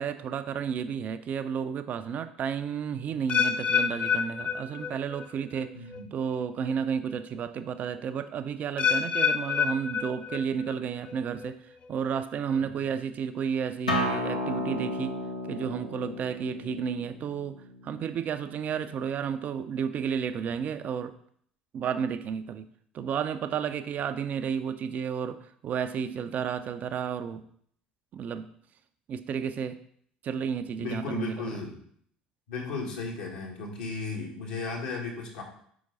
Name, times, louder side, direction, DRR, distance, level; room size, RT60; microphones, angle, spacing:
voice 1, 0.0-15.2 15.5-21.2 21.7-22.7 22.9-27.4 28.1-28.5 29.1-29.8 30.2-31.6, right 7 dB, 40° right, 10 dB, 0.4 m, -32 dB
sound 1, 3.3-5.3 5.6-6.0 6.7-6.8 8.8-10.7 11.1-11.5 12.1-12.2, left 7 dB, 30° left, 0.4 m, -28 dB
voice 2, 5.7-6.1 30.8-31.7 32.5-35.4, left 4 dB, 65° left, -2 dB, 1.7 m, -35 dB
Acoustic guitar, 13.9-19.1, left 1 dB, 85° left, 0.9 m, -34 dB
5.7 x 5.0 x 3.9 m, 0.64 s
figure-of-eight pair, 60°, 4 cm